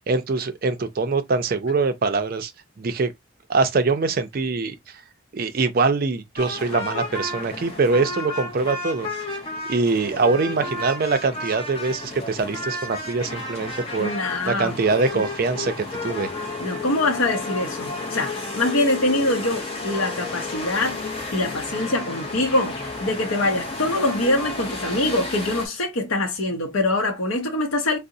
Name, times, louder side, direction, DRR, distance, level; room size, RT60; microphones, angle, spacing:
voice 1, 0.1-2.5 2.8-3.1 3.5-4.7 5.3-9.1 9.7-16.3, right 4 dB, 45° right, 0.4 m, -23 dB
sound 1, 6.4-25.7, left 2 dB, 25° left, 0.6 m, -32 dB
voice 2, 14.0-14.8 15.1-15.3 16.6-21.0 21.3-28.0, left 2 dB, 75° left, 0.6 m, -24 dB
3.6 x 2.0 x 2.6 m
head